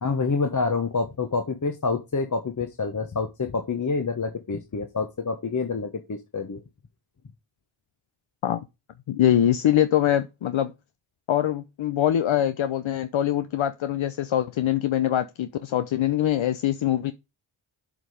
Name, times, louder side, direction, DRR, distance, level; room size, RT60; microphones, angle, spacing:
voice 1, 0.0-6.6, left 4 dB, 35° left, 1.3 m, -27 dB
voice 2, 9.1-10.7 11.3-17.1, left 11 dB, 65° left, 0.8 m, -23 dB
7.2 x 5.3 x 5.0 m
cardioid pair, 60°, 49 cm